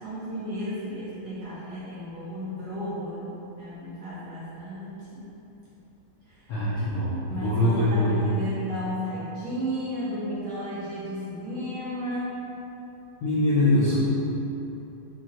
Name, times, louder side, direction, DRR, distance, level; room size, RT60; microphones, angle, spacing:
voice 1, 0.0-5.3 6.3-6.4 7.3-12.5, equal, 65° right, -8 dB, 1.1 m, -33 dB
voice 2, 6.5-8.1 13.2-13.9, left 1 dB, 75° left, -10 dB, 0.8 m, -23 dB
3.7 x 2.9 x 2.8 m, 2.9 s
omnidirectional pair, 2.2 m